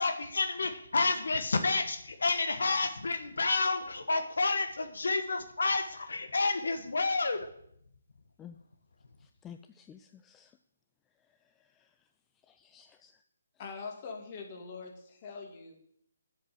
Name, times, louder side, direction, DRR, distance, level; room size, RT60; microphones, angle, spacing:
voice 1, 0.0-7.4, left 3 dB, 70° left, 8 dB, 1.1 m, -30 dB
voice 2, 9.2-10.5 11.8-11.9 12.5-13.1, left 8 dB, 15° left, 8 dB, 0.4 m, -52 dB
voice 3, 13.6-15.8, left 5 dB, 35° left, 2 dB, 2.4 m, -43 dB
8.0 x 7.4 x 7.8 m, 0.70 s
figure-of-eight pair, 145°, 0 cm